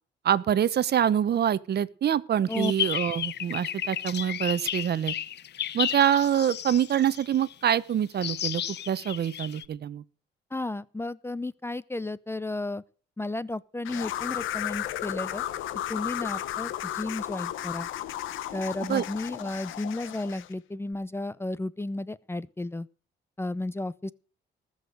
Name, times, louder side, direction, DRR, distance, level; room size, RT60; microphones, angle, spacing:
voice 1, 0.2-5.1 5.7-10.0 18.9-19.0, right 9 dB, 55° right, 0.9 m, -25 dB
sound 1, 2.5-7.5 8.2-9.6, left 10 dB, 60° left, 0.9 m, -33 dB
voice 2, 10.5-12.8 13.2-15.5 15.9-17.9 18.5-22.9 23.4-24.1, left 2 dB, 10° left, 0.7 m, -33 dB
sound 2, 13.8-20.5, left 12 dB, 85° left, 1.2 m, -34 dB
19.5 x 6.5 x 6.6 m
cardioid pair, 90°, 20 cm